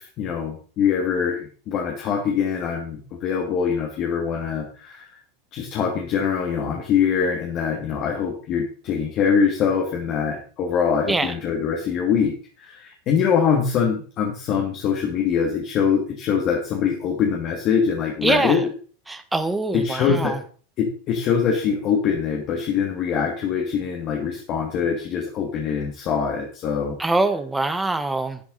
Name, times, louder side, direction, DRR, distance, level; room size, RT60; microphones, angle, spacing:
voice 1, 0.0-5.2 5.5-18.7 19.7-20.4 20.8-27.0, left 7 dB, 45° left, 1 dB, 2.8 m, -23 dB
voice 2, 18.2-18.6 19.1-20.4 27.0-28.4, right 2 dB, 10° right, 9 dB, 1.6 m, -23 dB
12.0 x 10.5 x 4.3 m, 0.41 s
supercardioid pair, 115°, 0 cm